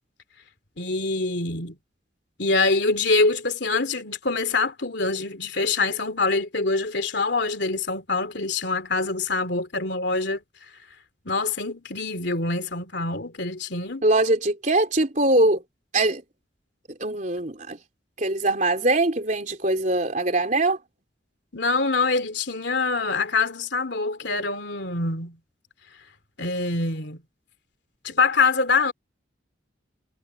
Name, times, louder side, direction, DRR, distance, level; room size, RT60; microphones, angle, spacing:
voice 1, 0.8-1.8 2.4-10.7 11.2-14.0 21.5-25.4 26.4-27.2 28.0-28.9, left 3 dB, 65° left, 2.8 m, -25 dB
voice 2, 14.0-15.6 15.9-16.2 16.9-17.8 18.2-20.8, right 2 dB, 40° right, 3.7 m, -22 dB
head